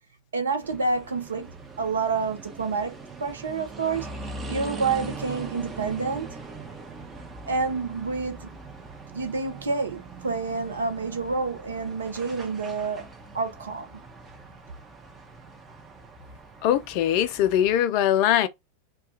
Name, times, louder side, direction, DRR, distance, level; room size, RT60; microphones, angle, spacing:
voice 1, 0.3-1.5 1.8-4.2 4.5-6.3 7.5-8.6 9.1-13.1 13.3-13.9, right 4 dB, 70° right, 0.6 m, -28 dB
sound 1, 0.6-17.8, right 3 dB, 20° right, 0.6 m, -41 dB
voice 2, 16.6-18.5, left 11 dB, 45° left, 0.3 m, -21 dB
2.3 x 2.3 x 2.8 m
figure-of-eight pair, 90°, 0 cm